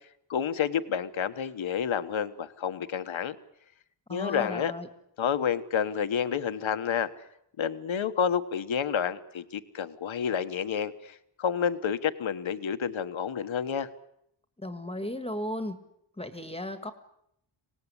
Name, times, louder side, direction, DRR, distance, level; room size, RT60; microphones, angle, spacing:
voice 1, 0.3-3.4 4.1-4.7 5.2-7.1 7.6-13.9, left 7 dB, 75° left, 11 dB, 1.3 m, -29 dB
voice 2, 4.1-4.9 14.6-15.8 16.2-16.9, left 1 dB, 10° left, 9 dB, 1.6 m, -35 dB
25.5 x 19.0 x 9.9 m, 0.77 s
wide cardioid pair, 155°, 47 cm